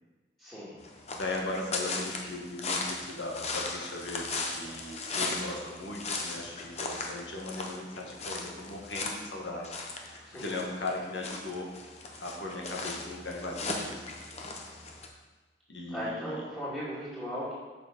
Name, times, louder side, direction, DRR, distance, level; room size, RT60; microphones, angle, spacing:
voice 1, 0.4-0.8 10.2-10.4 15.9-17.5, equal, 5° left, -12 dB, 2.1 m, -37 dB
sound 1, 0.8-15.1, left 3 dB, 35° left, 0.9 m, -37 dB
voice 2, 1.1-9.7 10.1-11.7 12.2-14.1 15.7-16.4, left 2 dB, 85° left, -1 dB, 1.8 m, -38 dB
7.0 x 6.2 x 5.2 m, 1.3 s
head